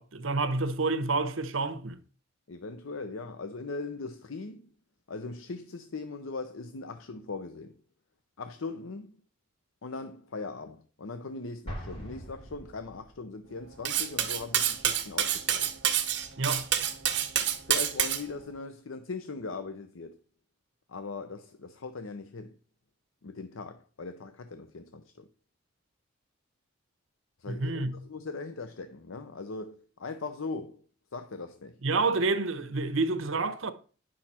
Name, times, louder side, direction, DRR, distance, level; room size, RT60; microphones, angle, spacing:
voice 1, 0.0-2.0 16.4-16.7 27.5-28.0 31.8-33.7, right 3 dB, 85° right, 1.0 m, -29 dB
voice 2, 2.5-4.7 5.1-7.7 8.4-9.1 9.8-15.7 17.7-20.2 20.9-22.6 23.2-25.2 27.4-30.8 31.1-31.8, left 3 dB, 90° left, 0.7 m, -40 dB
Explosion, 11.6-13.3, equal, 25° left, 3.7 m, -42 dB
Cutlery silverware, 13.8-18.2, right 10 dB, 60° right, 1.4 m, -27 dB
10.5 x 6.4 x 4.3 m
head